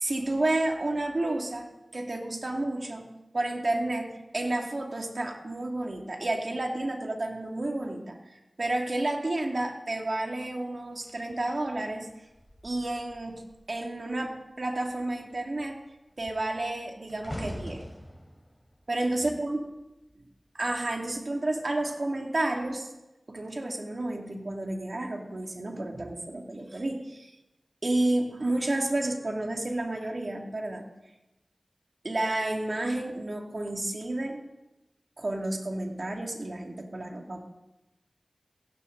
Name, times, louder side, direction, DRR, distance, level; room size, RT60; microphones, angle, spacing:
voice 1, 0.0-3.1 3.3-8.2 8.6-12.1 12.6-13.4 13.7-15.8 16.2-17.9 18.9-19.6 20.5-22.9 23.3-27.3 27.8-30.8 32.0-34.4 35.2-37.5, right 2 dB, 55° right, 1 dB, 2.7 m, -31 dB
sound 1, 11.0-13.7 14.0-14.4 14.7-20.0 20.8-21.0, equal, 15° left, 4.0 m, -45 dB
21.0 x 17.0 x 4.1 m, 0.99 s
wide cardioid pair, 65°, 0 cm